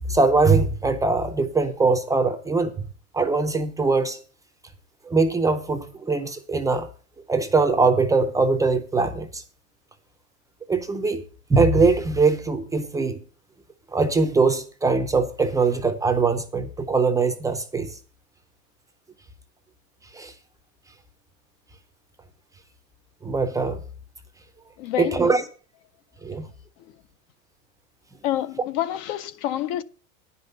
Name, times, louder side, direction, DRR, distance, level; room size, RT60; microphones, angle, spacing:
voice 1, 0.1-2.7 3.1-4.2 5.1-6.9 7.3-9.4 10.7-11.2 11.5-13.2 13.9-17.9 20.1-20.3 23.2-23.8 25.0-25.4 26.2-26.5, right 4 dB, 10° right, 0.5 m, -21 dB
voice 2, 24.8-25.3 26.8-27.0 28.2-29.8, left 12 dB, 45° left, 0.5 m, -28 dB
9.9 x 5.5 x 6.6 m
supercardioid pair, 145°, 40 cm